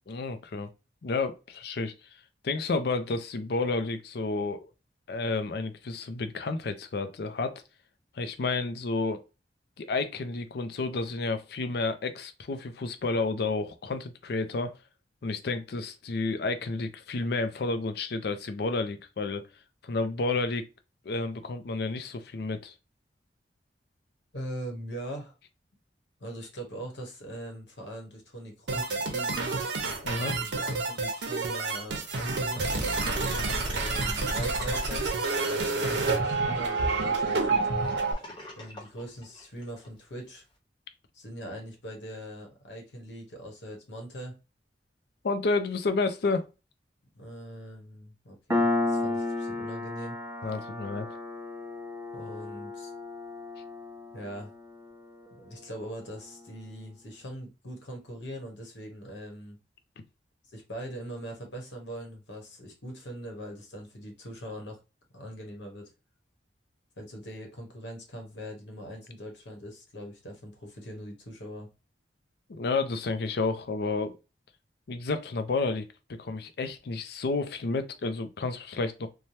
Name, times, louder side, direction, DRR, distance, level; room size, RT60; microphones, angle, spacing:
voice 1, 0.1-0.7 1.0-1.9 2.4-4.7 5.1-7.6 8.1-9.2 9.8-14.8 15.2-19.4 19.8-20.7 21.1-22.7 30.0-30.3 33.3-33.6 45.2-46.5 50.4-51.1 72.5-74.2 74.9-75.9 76.2-79.1, left 3 dB, 60° left, 0.4 m, -30 dB
voice 2, 24.3-25.4 26.2-29.6 30.1-35.1 35.5-37.7 38.6-40.4 41.1-44.4 47.1-50.2 52.1-52.9 54.1-54.5 55.3-59.6 60.5-64.8 65.1-65.9 67.0-71.7, equal, 80° left, 1.1 m, -41 dB
sound 1, 28.7-38.1, right 3 dB, 75° right, 0.7 m, -29 dB
Gurgling / Sink (filling or washing), 32.4-39.9, equal, 25° left, 1.0 m, -44 dB
Piano, 48.5-55.7, left 2 dB, 15° right, 0.4 m, -33 dB
3.2 x 2.2 x 2.7 m
head